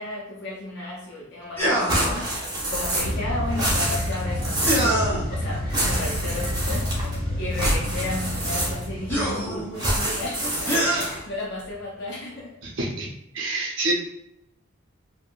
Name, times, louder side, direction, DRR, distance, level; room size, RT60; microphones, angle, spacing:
voice 1, 0.0-6.9 7.4-12.6, left 2 dB, 50° left, -4 dB, 0.5 m, -34 dB
sound 1, 1.6-2.3 4.7-5.3 7.4-7.5 9.1-9.8 10.7-11.2, right 1 dB, 10° left, 0.7 m, -24 dB
sound 2, 1.9-3.2 3.5-4.9 5.7-7.2 7.5-9.0 9.8-11.2, right 1 dB, 20° right, 0.7 m, -27 dB
sound 3, 3.0-9.8 12.3-12.4, left 1 dB, 45° right, 1.2 m, -29 dB
voice 2, 12.6-13.1 13.3-13.9, right 2 dB, 65° right, 0 dB, 0.7 m, -28 dB
3.5 x 2.1 x 2.4 m, 0.82 s
head